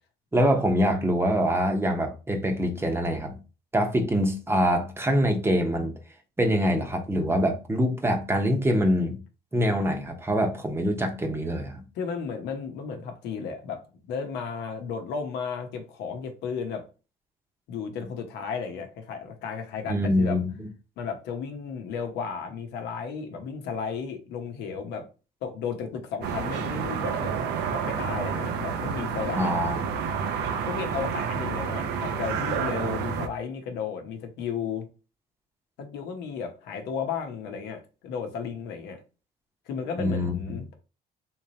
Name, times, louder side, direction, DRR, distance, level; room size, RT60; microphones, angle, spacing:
voice 1, 0.3-3.3 3.7-5.9 6.4-9.2 9.5-11.8 19.9-20.5 29.4-29.8 40.0-40.6, equal, 15° right, 0.9 m, -24 dB
voice 2, 11.9-16.9 17.7-20.4 21.0-25.1 25.4-29.6 30.6-34.9 35.8-39.0 39.7-40.7, left 6 dB, 85° left, 0.9 m, -34 dB
sound 1, 26.2-33.3, right 6 dB, 80° right, 0.6 m, -29 dB
3.6 x 3.0 x 2.8 m
cardioid pair, 110°, 17 cm